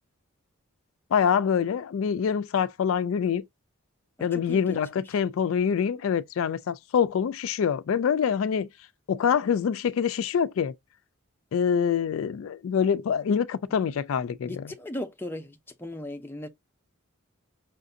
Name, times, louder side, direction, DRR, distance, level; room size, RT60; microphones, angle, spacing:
voice 1, 1.1-3.4 4.2-8.7 9.1-10.7 11.5-14.7, left 7 dB, 65° left, 0.3 m, -25 dB
voice 2, 4.2-4.8 14.5-16.5, left 1 dB, 10° left, 0.5 m, -37 dB
5.6 x 2.5 x 2.6 m
head